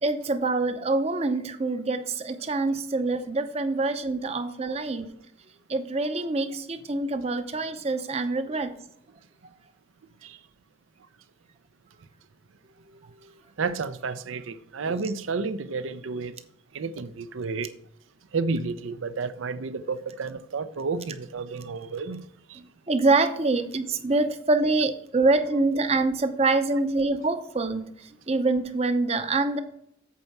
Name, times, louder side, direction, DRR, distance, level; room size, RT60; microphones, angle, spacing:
voice 1, 0.0-5.1 5.7-8.7 13.2-13.3 14.9-15.0 22.5-29.6, right 3 dB, 30° right, 0.6 m, -25 dB
voice 2, 13.6-16.3 16.7-17.7 18.3-22.2 22.5-22.6, right 4 dB, 75° right, 0.5 m, -31 dB
8.4 x 4.5 x 5.9 m
head